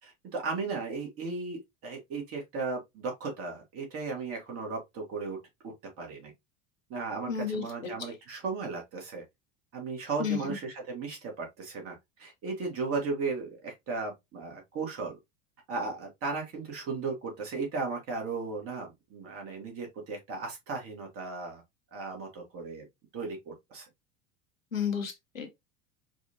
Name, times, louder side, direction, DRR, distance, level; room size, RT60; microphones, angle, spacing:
voice 1, 0.0-5.4 5.6-6.3 6.9-9.2 9.7-15.2 15.7-21.6 21.9-22.9 23.1-23.8, right 4 dB, 35° right, 1.8 m, -36 dB
voice 2, 7.3-7.9 10.2-10.5 24.7-25.5, left 7 dB, 85° left, 0.9 m, -32 dB
4.6 x 2.5 x 2.8 m
figure-of-eight pair, 75°, 39 cm